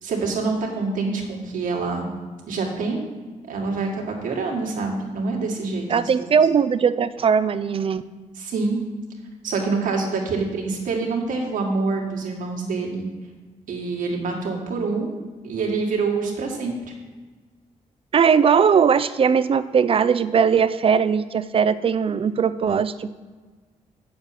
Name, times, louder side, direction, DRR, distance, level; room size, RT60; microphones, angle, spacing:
voice 1, 0.0-2.1 2.5-3.1 3.5-5.9 6.2-6.3 8.4-8.8 9.4-13.1 13.7-15.1 15.4-16.8, right 4 dB, 85° right, -1 dB, 1.9 m, -26 dB
voice 2, 5.9-8.0 18.1-23.1, right 6 dB, 45° right, 13 dB, 0.5 m, -19 dB
8.1 x 6.9 x 5.8 m, 1.4 s
cardioid pair, 90°, 14 cm